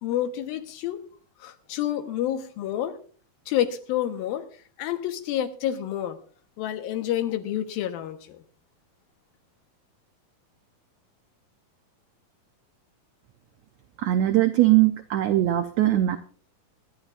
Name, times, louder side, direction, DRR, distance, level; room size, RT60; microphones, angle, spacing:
voice 1, 0.0-1.0 1.4-3.0 3.5-4.5 4.8-6.2 6.6-8.4, left 11 dB, 85° left, 8 dB, 2.9 m, -28 dB
voice 2, 14.0-16.2, right 14 dB, 90° right, 8 dB, 1.5 m, -21 dB
24.0 x 11.0 x 2.4 m, 0.41 s
omnidirectional pair, 4.1 m